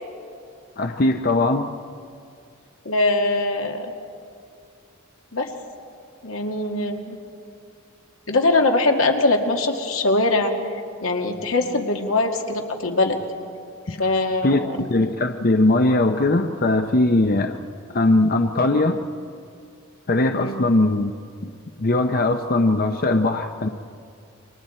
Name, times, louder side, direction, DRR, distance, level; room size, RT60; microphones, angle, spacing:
voice 1, 0.8-1.7 13.9-14.0 14.4-17.6 17.9-19.0 20.1-21.1 21.4-21.5 21.8-23.7, left 2 dB, 45° left, 6 dB, 0.7 m, -20 dB
voice 2, 2.9-3.9 5.3-5.5 6.2-7.2 8.3-10.5 11.0-13.2 13.9-14.8 20.3-20.7, left 2 dB, 85° left, 2 dB, 2.1 m, -22 dB
29.5 x 24.0 x 4.4 m, 2.4 s
head